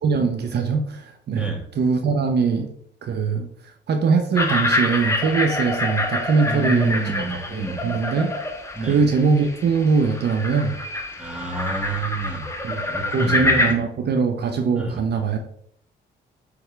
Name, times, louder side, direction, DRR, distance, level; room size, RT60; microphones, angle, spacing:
voice 1, 0.0-2.7 3.0-3.5 3.9-8.4 8.8-10.7 12.6-12.8 13.1-15.4, right 5 dB, 55° right, 5 dB, 0.8 m, -22 dB
voice 2, 1.3-1.6 6.5-7.8 8.8-9.0 11.2-12.5 12.8-13.6 14.8-15.0, right 2 dB, 5° right, 0 dB, 1.9 m, -29 dB
sound 1, 4.3-13.7, left 2 dB, 15° left, 1.1 m, -26 dB
9.2 x 3.5 x 3.3 m, 0.67 s
cardioid pair, 90°, 20 cm